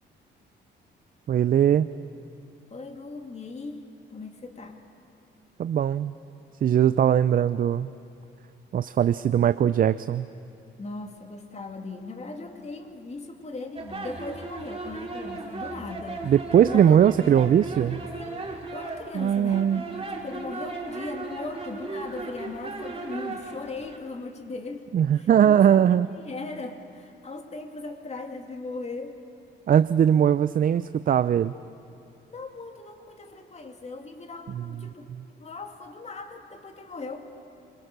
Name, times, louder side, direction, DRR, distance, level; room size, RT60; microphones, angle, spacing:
voice 1, 1.3-1.9 5.6-6.1 6.6-7.9 8.7-10.3 16.2-18.0 19.1-19.8 24.9-26.1 29.7-31.5 34.5-34.6, right 9 dB, 45° right, 14 dB, 0.5 m, -20 dB
voice 2, 2.7-3.8 4.1-4.8 10.8-16.3 16.6-17.5 18.2-24.9 25.1-29.2 32.3-35.1 35.4-37.3, left 3 dB, 35° left, 4 dB, 2.6 m, -38 dB
sound 1, 13.8-24.0, right 3 dB, 30° right, 3.3 m, -37 dB
26.0 x 22.5 x 6.7 m, 2.5 s
cardioid pair, 90°, 20 cm